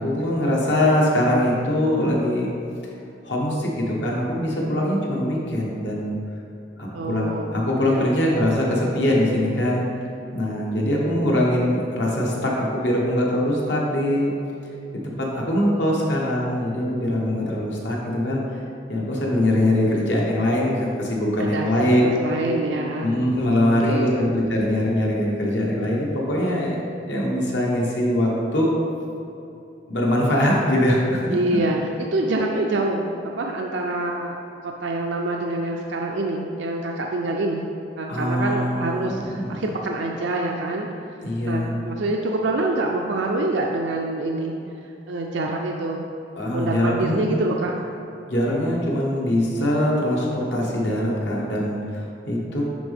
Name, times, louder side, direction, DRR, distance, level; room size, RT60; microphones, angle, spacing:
voice 1, 0.0-2.5 3.2-6.1 6.8-9.8 10.3-14.3 15.0-18.6 18.9-22.1 23.0-26.8 27.0-28.7 29.9-31.6 38.1-39.6 41.2-41.7 46.4-47.3 48.3-52.6, left 1 dB, 70° left, -3 dB, 1.4 m, -22 dB
voice 2, 6.9-7.6 7.9-8.3 21.4-23.1 23.8-24.3 31.3-31.8 32.1-37.7 38.0-40.9 41.5-44.5 45.1-46.1 46.5-47.8, right 2 dB, 80° right, 1 dB, 0.5 m, -26 dB
10.0 x 4.0 x 3.5 m, 2.8 s
head